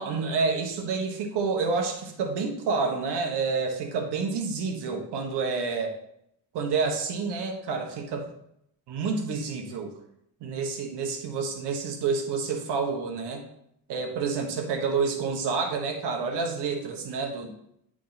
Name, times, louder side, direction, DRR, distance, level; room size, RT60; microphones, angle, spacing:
voice 1, 0.0-5.9 6.5-8.3 8.9-9.9 10.4-13.4 13.9-17.5, right 4 dB, 90° right, 4 dB, 1.2 m, -29 dB
9.9 x 3.7 x 4.1 m, 0.75 s
cardioid pair, 85°, 40 cm